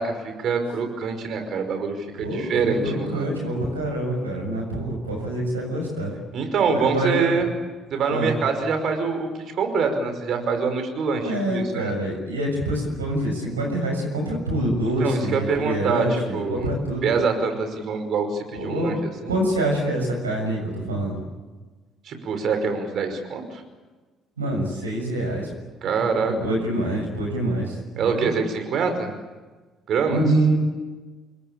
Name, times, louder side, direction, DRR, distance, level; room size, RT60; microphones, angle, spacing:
voice 1, 0.0-3.3 6.3-7.5 7.9-9.3 9.5-11.9 15.0-16.7 17.0-19.0 19.2-19.3 22.0-23.6 25.8-26.3 28.0-29.1 29.9-30.2, right 5 dB, 55° right, 6 dB, 5.4 m, -25 dB
voice 2, 2.2-6.1 6.7-7.4 8.1-8.3 11.2-17.1 18.5-19.0 19.2-21.2 24.4-25.5 25.8-26.0 26.2-28.3 30.1-30.5, right 1 dB, 85° right, 1 dB, 6.8 m, -26 dB
29.0 x 22.0 x 8.8 m, 1.3 s
figure-of-eight pair, 50°, 0 cm